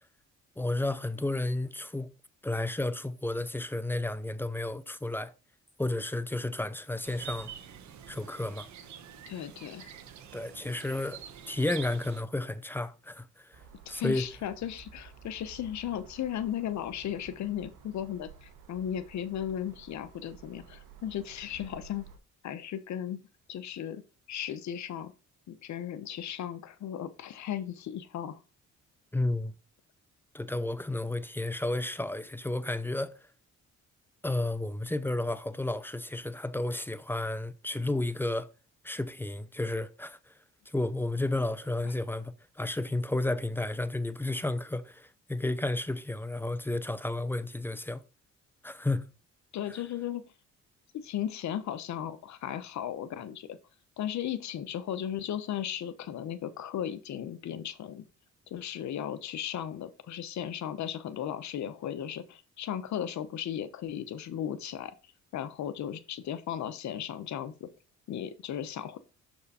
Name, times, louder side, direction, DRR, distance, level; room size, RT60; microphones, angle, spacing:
voice 1, 0.6-2.1 2.4-5.3 5.8-7.5 8.1-8.7 10.3-11.2 11.5-13.6 13.9-14.3 29.1-29.5 30.3-33.1 34.2-38.5 38.8-40.3 40.7-48.0 48.6-49.1, left 2 dB, 5° left, 0.5 m, -32 dB
sound 1, 7.0-12.2, right 9 dB, 70° right, 1.0 m, -46 dB
voice 2, 9.3-9.9 13.9-22.1 22.4-23.2 23.5-24.0 24.3-25.1 25.5-28.4 49.5-50.2 50.9-53.6 54.0-58.0 58.5-64.9 65.3-67.7 68.1-69.0, left 10 dB, 65° left, 0.9 m, -36 dB
sound 2, 13.5-22.2, right 6 dB, 85° right, 1.4 m, -53 dB
6.4 x 4.8 x 4.2 m
cardioid pair, 90°, 30 cm